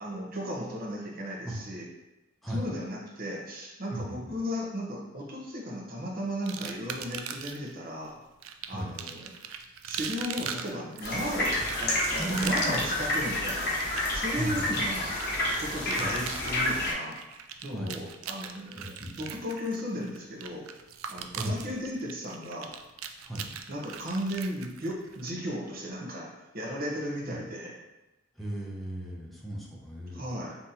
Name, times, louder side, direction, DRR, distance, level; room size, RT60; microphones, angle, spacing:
voice 1, 0.0-1.9 2.5-8.1 8.7-9.3 9.9-13.8 14.1-15.1 15.6-17.2 17.6-20.7 21.1-22.7 23.7-27.7 30.1-30.6, equal, 45° right, -2 dB, 0.8 m, -35 dB
voice 2, 3.9-4.4 8.7-8.9 11.5-11.7 12.2-12.8 14.3-14.8 16.0-16.1 17.7-17.9 18.8-19.3 21.3-21.6 23.2-23.5 27.3-27.4 28.4-30.2, right 1 dB, ahead, -4 dB, 0.6 m, -36 dB
sound 1, 6.5-7.7 8.4-25.3, right 8 dB, 75° right, 0.3 m, -40 dB
sound 2, 11.0-16.9, left 1 dB, 50° left, 0.9 m, -29 dB
3.9 x 2.8 x 2.6 m, 0.97 s
head